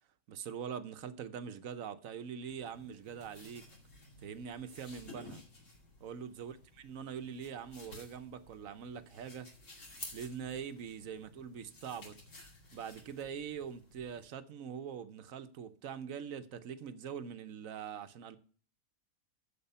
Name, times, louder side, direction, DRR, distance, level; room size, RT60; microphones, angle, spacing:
voice 1, 0.3-3.7 4.2-5.4 6.0-9.5 10.1-12.2 12.7-18.4, right 7 dB, 70° right, 1.2 m, -43 dB
sound 1, 2.5-14.3, left 2 dB, 55° left, 2.8 m, -54 dB
14.0 x 5.0 x 5.5 m
omnidirectional pair, 1.5 m